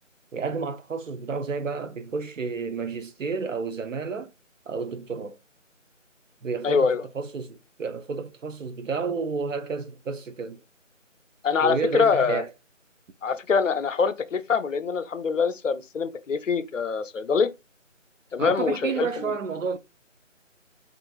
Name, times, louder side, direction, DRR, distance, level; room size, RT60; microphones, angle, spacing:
voice 1, 0.3-4.3 4.7-5.4 6.4-10.6 11.6-12.5 18.4-19.8, right 5 dB, 75° right, 0.5 m, -31 dB
voice 2, 6.6-7.0 11.4-12.4 13.2-17.5 18.3-19.3, left 5 dB, 70° left, 0.5 m, -24 dB
2.9 x 2.4 x 2.3 m
figure-of-eight pair, 165°, 39 cm